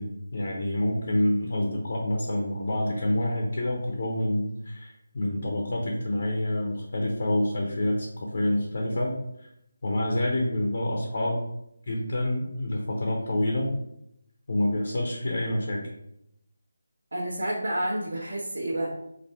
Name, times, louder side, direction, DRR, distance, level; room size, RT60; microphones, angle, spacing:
voice 1, 0.0-9.5 9.8-11.4 11.9-13.7 14.5-15.8, left 1 dB, 45° left, 0 dB, 0.6 m, -27 dB
voice 2, 17.1-19.1, right 1 dB, 70° right, -8 dB, 1.0 m, -30 dB
4.2 x 2.6 x 3.3 m, 0.80 s
figure-of-eight pair, 175°, 0 cm